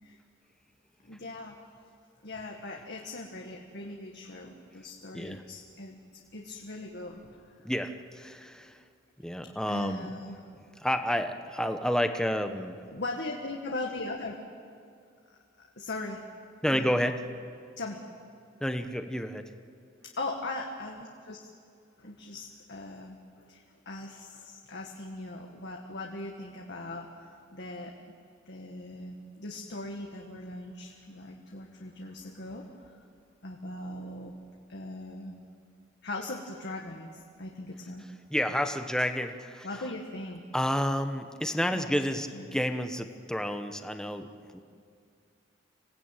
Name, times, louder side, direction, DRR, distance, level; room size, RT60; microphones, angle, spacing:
voice 1, 1.0-1.6 2.2-6.0 6.3-7.5 9.7-10.4 12.9-14.4 15.8-16.2 16.7-16.9 17.8-18.0 20.0-21.5 22.0-27.9 28.5-33.0 33.4-34.3 34.7-35.4 36.0-38.1 39.6-40.4 41.7-41.9 42.3-42.6, left 2 dB, 60° left, 1 dB, 1.7 m, -40 dB
voice 2, 7.6-8.8 9.2-10.1 10.8-12.8 16.6-17.2 18.6-19.5 38.3-39.8 40.5-44.6, equal, 5° left, 7 dB, 1.1 m, -30 dB
26.5 x 17.5 x 9.1 m, 2.3 s
head